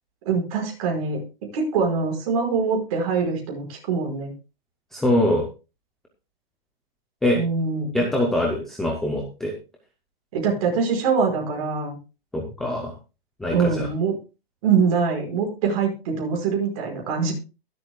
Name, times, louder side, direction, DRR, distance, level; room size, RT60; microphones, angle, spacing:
voice 1, 0.3-1.2 1.5-4.3 7.4-8.1 10.3-12.0 13.5-14.1 14.6-17.3, right 5 dB, 35° right, 1 dB, 5.2 m, -23 dB
voice 2, 4.9-5.5 7.2-7.4 7.9-9.5 12.3-12.9 13.4-13.9, left 1 dB, ahead, 1 dB, 0.5 m, -23 dB
22.5 x 8.0 x 2.2 m, 0.30 s
hypercardioid pair, 170°, 30 cm